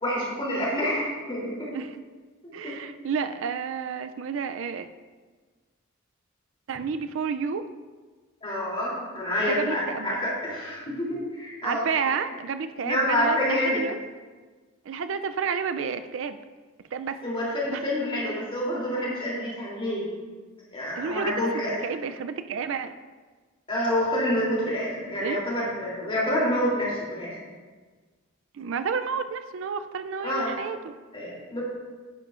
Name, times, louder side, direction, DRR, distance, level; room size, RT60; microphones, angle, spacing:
voice 1, 0.0-1.7 2.4-2.7 8.4-12.2 12.8-13.8 17.2-20.1 20.7-21.8 23.7-27.4 30.2-30.5 31.1-31.6, left 1 dB, 25° left, -5 dB, 3.0 m, -28 dB
voice 2, 2.5-4.9 6.7-7.7 9.4-10.2 11.6-14.0 14.9-16.4 16.9-17.2 17.7-17.8 21.0-22.9 25.2-25.5 28.5-30.9, right 6 dB, 65° right, 10 dB, 0.4 m, -30 dB
10.5 x 10.0 x 2.5 m, 1.4 s
head